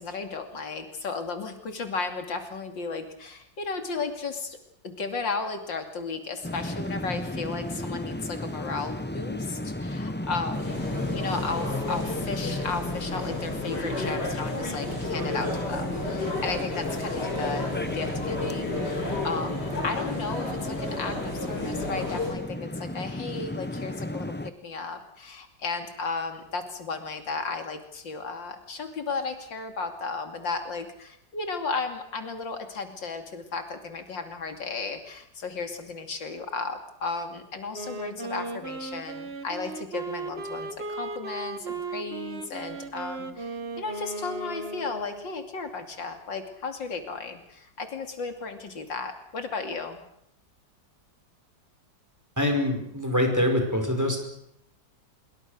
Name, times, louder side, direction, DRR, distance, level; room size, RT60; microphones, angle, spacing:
voice 1, 0.0-4.6 4.8-10.9 11.1-50.0, left 4 dB, 75° left, 6 dB, 3.3 m, -34 dB
sound 1, 6.4-24.5, left 1 dB, 10° left, 0.5 m, -34 dB
sound 2, 10.5-22.3, left 2 dB, 60° left, 6.6 m, -33 dB
Wind instrument woodwind instrument, 37.7-45.4, right 3 dB, 35° right, 1.6 m, -36 dB
voice 2, 52.4-54.2, left 1 dB, 10° right, 4 dB, 5.1 m, -24 dB
25.5 x 23.0 x 6.6 m, 0.72 s
omnidirectional pair, 2.0 m